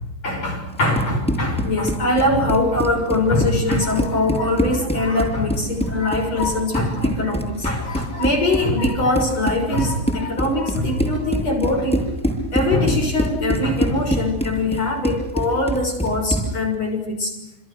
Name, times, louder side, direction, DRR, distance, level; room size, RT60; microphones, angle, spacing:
voice 1, 0.2-12.0 12.5-17.4, left 2 dB, 45° left, 2 dB, 7.7 m, -22 dB
Run, 0.7-16.6, equal, ahead, 7.1 m, -25 dB
29.5 x 29.5 x 6.5 m, 0.91 s
omnidirectional pair, 4.0 m